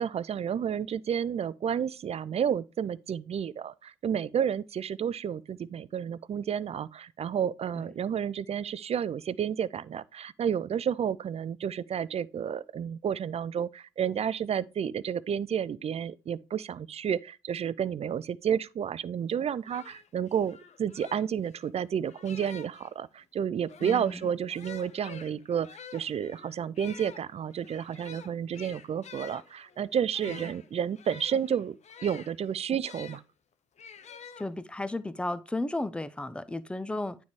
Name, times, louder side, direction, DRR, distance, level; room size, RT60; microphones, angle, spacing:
voice 1, 0.0-31.8 32.0-33.2, right 8 dB, 40° right, 0.5 m, -31 dB
sound 1, 19.3-19.4 19.6-22.9 23.6-33.2 33.8-34.9, left 7 dB, 45° left, 0.8 m, -48 dB
voice 2, 23.8-24.3 30.3-30.4 34.4-37.2, left 2 dB, 5° left, 0.6 m, -34 dB
9.4 x 3.4 x 4.8 m
hypercardioid pair, 55°, 16 cm